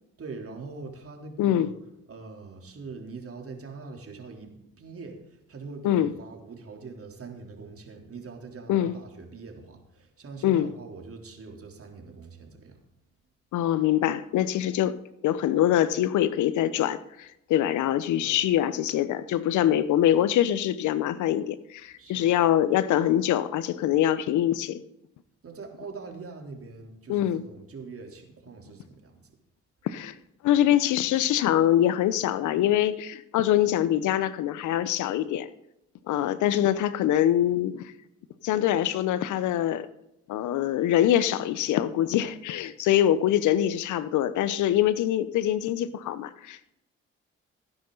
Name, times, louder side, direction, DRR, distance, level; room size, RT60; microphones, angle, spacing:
voice 1, 0.2-1.7 2.1-12.8 18.2-18.4 22.0-22.3 25.4-29.3, right 4 dB, 45° right, 2 dB, 3.5 m, -43 dB
voice 2, 1.4-1.7 5.8-6.1 8.7-8.9 10.4-10.7 13.5-15.0 15.2-24.8 27.1-27.4 29.8-30.1 30.4-35.5 36.1-37.9 38.4-39.9 40.3-46.6, left 11 dB, 70° left, 15 dB, 0.9 m, -24 dB
17.0 x 9.9 x 4.0 m, 0.83 s
hypercardioid pair, 45°, 31 cm